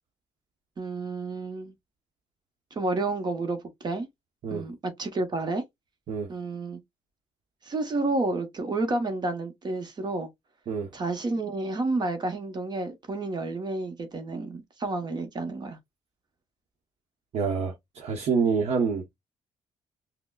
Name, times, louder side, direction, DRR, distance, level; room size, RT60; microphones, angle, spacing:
voice 1, 0.8-1.7 2.7-4.1 4.5-5.6 6.3-6.8 7.6-10.3 10.9-15.8, right 2 dB, 40° right, 1.0 m, -30 dB
voice 2, 17.3-19.0, right 5 dB, 60° right, 1.0 m, -27 dB
5.9 x 2.2 x 2.3 m
cardioid pair, 85°, 12 cm